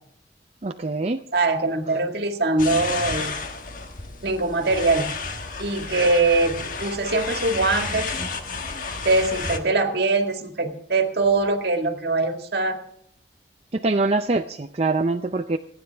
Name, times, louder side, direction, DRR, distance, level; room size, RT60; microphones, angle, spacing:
voice 1, 0.6-1.2 13.7-15.6, right 3 dB, 35° right, 6 dB, 0.5 m, -24 dB
voice 2, 1.3-3.4 4.2-5.1 5.6-8.1 9.0-12.8, right 3 dB, 65° right, 5 dB, 1.9 m, -22 dB
sound 1, 2.6-9.6, left 4 dB, 50° left, 1.4 m, -31 dB
28.0 x 9.9 x 3.4 m, 0.66 s
head